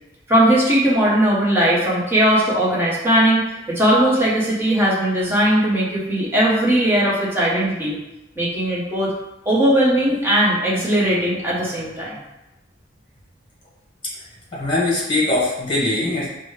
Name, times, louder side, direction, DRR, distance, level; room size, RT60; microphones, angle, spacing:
voice 1, 0.3-3.4 3.7-8.0 8.4-9.1 9.4-12.2, right 1 dB, 10° right, -6 dB, 1.0 m, -18 dB
voice 2, 14.5-16.3, left 2 dB, 25° left, -7 dB, 1.5 m, -21 dB
5.1 x 2.2 x 3.3 m, 0.95 s
head